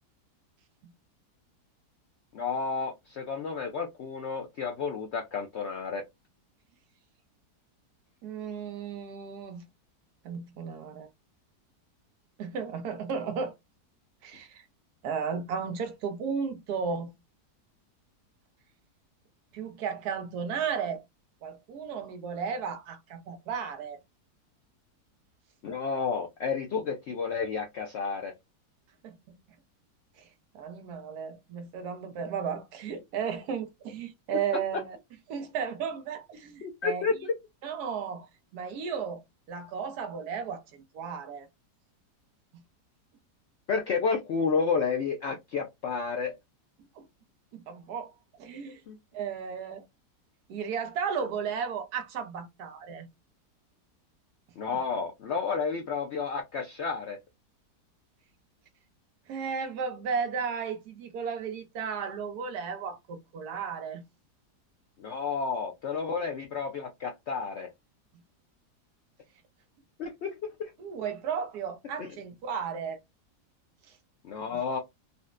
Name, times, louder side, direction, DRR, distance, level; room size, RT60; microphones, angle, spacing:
voice 1, 2.3-6.0 25.6-28.3 36.6-37.3 43.7-46.3 48.9-49.0 54.6-57.2 65.0-67.7 70.0-70.3 70.6-70.7 72.0-72.1 74.2-74.8, left 5 dB, 90° left, 0.5 m, -31 dB
voice 2, 8.2-9.7 10.2-11.1 12.4-13.5 14.2-14.6 15.0-17.1 19.5-21.0 21.4-24.0 29.0-29.4 30.2-30.3 30.5-35.0 35.3-37.1 37.6-38.3 38.5-39.2 39.5-41.5 42.5-42.6 47.0-47.1 47.5-48.1 48.4-48.8 49.1-49.8 50.5-53.1 59.3-64.0 70.8-73.0 73.9-74.0 74.5-74.6, right 6 dB, 70° right, 1.2 m, -34 dB
4.0 x 2.1 x 2.4 m
omnidirectional pair, 1.8 m